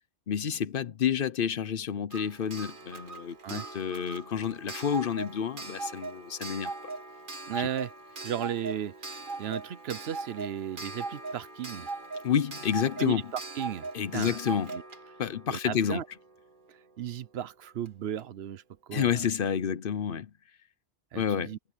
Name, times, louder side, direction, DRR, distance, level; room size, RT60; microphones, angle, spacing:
voice 1, 0.3-6.7 7.6-7.7 12.2-13.2 13.9-14.8 15.2-16.0 18.9-20.3 21.1-21.6, left 8 dB, 60° left, 0.9 m, -29 dB
Clock, 2.1-16.7 17.9-18.0 18.2-18.3, right 3 dB, 55° right, 1.6 m, -40 dB
voice 2, 7.5-7.9 8.2-9.0 9.4-11.9 13.0-13.9 14.1-14.4 14.7-14.8 15.5-16.0 17.0-18.6 18.9-19.3 21.1-21.6, right 10 dB, 80° right, 1.0 m, -35 dB
omnidirectional pair, 1.1 m